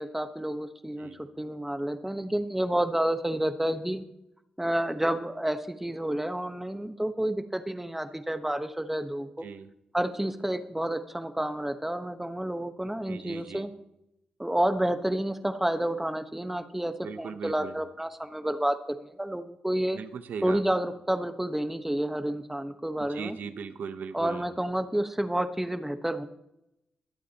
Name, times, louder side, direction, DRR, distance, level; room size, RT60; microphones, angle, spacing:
voice 1, 0.0-4.0 4.6-9.4 9.9-13.7 14.4-20.0 20.4-23.4 24.1-26.3, right 1 dB, 10° right, 8 dB, 1.2 m, -30 dB
voice 2, 9.4-9.7 13.1-13.7 17.0-17.8 19.9-20.6 23.0-24.5, right 6 dB, 75° right, 10 dB, 0.9 m, -39 dB
22.5 x 8.3 x 2.9 m, 0.85 s
cardioid pair, 60°, 3 cm